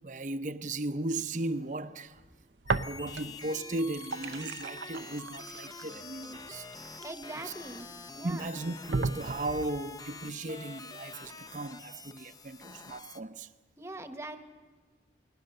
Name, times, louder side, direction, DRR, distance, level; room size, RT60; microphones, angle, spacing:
voice 1, 0.0-2.2 2.7-6.7 7.4-7.5 8.2-13.5, right 2 dB, 45° right, 0.7 m, -36 dB
sound 1, 2.6-3.4 3.7-7.7 8.3-8.4 8.9-9.8, right 4 dB, 90° right, 0.7 m, -35 dB
sound 2, 2.7-13.2, left 3 dB, 20° left, 0.7 m, -46 dB
voice 2, 7.0-7.9 8.1-8.5 13.8-14.4, right 2 dB, 15° right, 1.2 m, -41 dB
29.0 x 21.0 x 6.7 m
head